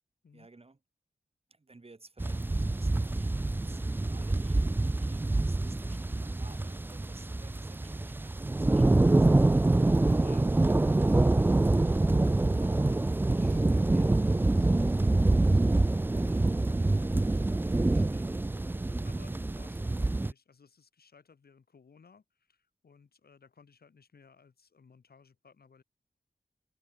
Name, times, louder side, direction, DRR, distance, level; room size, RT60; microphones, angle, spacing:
voice 1, 0.3-0.8 1.5-9.3, right 3 dB, 40° right, 3.0 m, -55 dB
sound 1, 2.2-20.3, right 2 dB, 15° right, 0.3 m, -26 dB
voice 2, 10.1-18.8 19.0-25.8, left 5 dB, 85° left, 3.8 m, -59 dB
wide cardioid pair, 65°, 16 cm